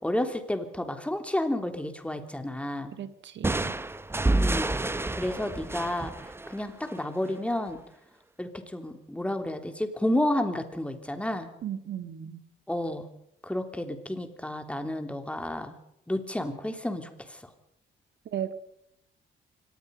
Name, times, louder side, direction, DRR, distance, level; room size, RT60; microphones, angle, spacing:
voice 1, 0.0-2.9 4.3-4.7 5.1-7.8 8.4-11.5 12.7-13.1 13.4-15.7 16.1-17.4, left 1 dB, 5° left, 7 dB, 3.2 m, -31 dB
voice 2, 3.0-3.7 11.6-12.4 18.3-18.5, right 10 dB, 65° right, 11 dB, 2.0 m, -35 dB
sound 1, 3.4-7.1, right 2 dB, 10° right, 0.9 m, -29 dB
24.5 x 19.5 x 5.4 m, 0.77 s
cardioid pair, 90°, 20 cm